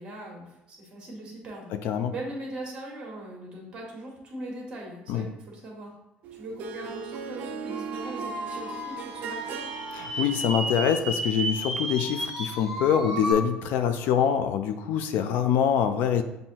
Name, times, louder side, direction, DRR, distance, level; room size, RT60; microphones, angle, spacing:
voice 1, 0.0-1.7 2.1-6.0 6.3-9.7, right 1 dB, 25° right, -1 dB, 1.3 m, -40 dB
voice 2, 1.7-2.1 5.1-5.3 9.9-16.2, left 8 dB, 60° left, 8 dB, 0.3 m, -25 dB
Harp, 6.2-12.0, right 6 dB, 50° right, 0.4 m, -39 dB
sound 1, 7.7-13.3, right 1 dB, ahead, 0.8 m, -33 dB
7.2 x 2.6 x 2.8 m, 0.91 s
cardioid pair, 165°, 3 cm